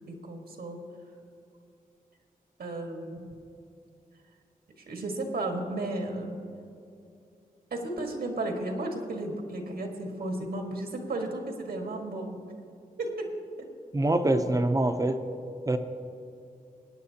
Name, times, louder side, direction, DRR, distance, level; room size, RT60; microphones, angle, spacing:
voice 1, 0.1-0.8 2.6-3.4 4.9-6.4 7.7-12.4 13.0-13.1 13.6-13.7, right 2 dB, 85° right, 2 dB, 1.7 m, -34 dB
voice 2, 13.9-15.2 15.7-15.8, right 1 dB, 20° right, 7 dB, 0.7 m, -24 dB
22.0 x 9.1 x 2.9 m, 2.6 s
wide cardioid pair, 110°, 16 cm